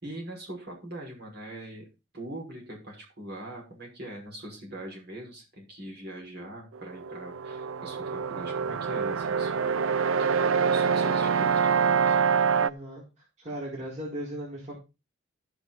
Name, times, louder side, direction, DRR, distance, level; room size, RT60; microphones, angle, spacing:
voice 1, 0.0-1.9 2.1-9.8 10.2-12.2, right 1 dB, 50° right, 0 dB, 5.7 m, -42 dB
sound 1, 6.7-12.7, right 6 dB, 70° right, 0.5 m, -25 dB
voice 2, 12.5-14.7, right 1 dB, 30° right, -5 dB, 4.5 m, -38 dB
15.0 x 6.6 x 4.1 m, 0.28 s
head